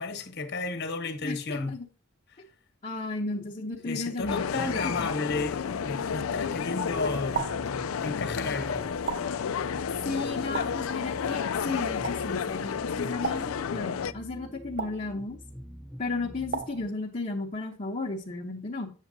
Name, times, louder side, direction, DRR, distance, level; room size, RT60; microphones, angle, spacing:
voice 1, 0.0-1.8 2.3-2.4 3.8-7.5 8.0-8.9, left 3 dB, 55° left, 1.3 m, -33 dB
voice 2, 1.2-1.9 2.8-4.5 4.8-5.1 10.0-15.4 16.0-18.9, left 3 dB, 35° left, 0.9 m, -34 dB
sound 1, 4.2-16.9, equal, ahead, 0.3 m, -45 dB
sound 2, 4.3-14.1, left 7 dB, 85° left, 0.4 m, -31 dB
sound 3, 7.3-7.7 9.1-9.5 10.5-10.9 12.0-12.3 13.2-13.6 14.8-15.1 16.5-16.9, right 7 dB, 50° right, 0.5 m, -35 dB
8.2 x 7.1 x 2.7 m
head